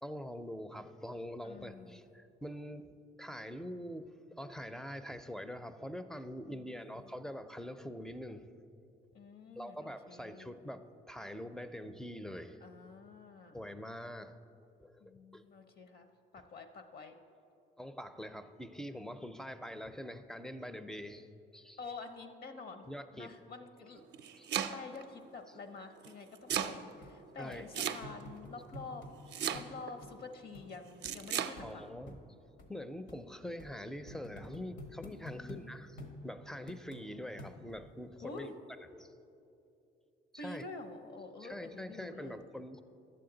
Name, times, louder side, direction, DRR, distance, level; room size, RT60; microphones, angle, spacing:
voice 1, 0.0-2.9 3.2-8.5 9.6-12.6 13.5-14.4 14.8-15.4 17.8-21.3 21.5-21.8 22.9-23.3 24.3-24.5 27.4-27.7 31.6-32.1 32.7-36.0 36.2-38.5 39.0-39.1 40.3-40.6 41.4-42.8, equal, 5° left, 10 dB, 0.4 m, -44 dB
voice 2, 1.4-2.0 6.5-7.1 9.1-10.6 12.6-13.6 15.0-16.1 16.3-17.1 21.8-22.8 23.1-24.0 24.6-29.1 29.5-31.9 35.3-35.7 38.2-38.6 40.4-42.4, left 3 dB, 50° left, 7 dB, 0.7 m, -48 dB
Domestic sounds home sounds, 24.0-25.0 26.0-26.8 27.7-28.4 29.3-29.9 31.0-31.5, right 9 dB, 60° right, 0.5 m, -35 dB
sound 1, 26.5-26.6 27.0-27.1 27.5-27.6 28.0-29.1 29.5-29.7 30.0-30.1 30.5-30.7 31.0-31.2 31.6-31.7 32.1-32.2 32.6-32.7 33.1-33.2 33.6-33.7 34.1-35.6 36.0-36.2 36.7-37.0 37.4-37.8 38.4-38.5, left 1 dB, 80° left, 1.2 m, -49 dB
11.0 x 7.8 x 3.9 m, 2.7 s
cardioid pair, 90°, 20 cm